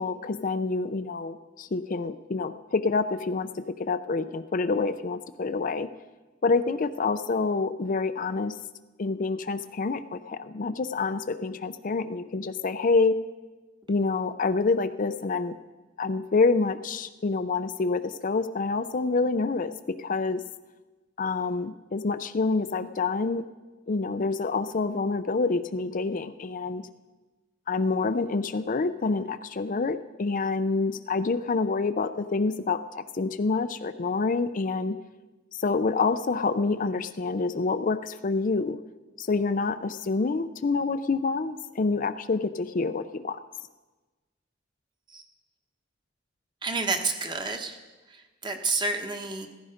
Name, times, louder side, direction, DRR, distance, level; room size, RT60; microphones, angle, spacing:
voice 1, 0.0-5.9 6.4-8.6 9.0-13.2 13.9-15.6 16.0-20.4 21.2-23.4 23.9-26.9 27.7-35.0 35.5-38.8 39.2-43.4, left 4 dB, 45° left, 11 dB, 0.5 m, -27 dB
voice 2, 46.6-47.8 48.1-49.5, right 3 dB, 25° right, 5 dB, 1.2 m, -30 dB
15.0 x 15.0 x 5.1 m, 1.2 s
head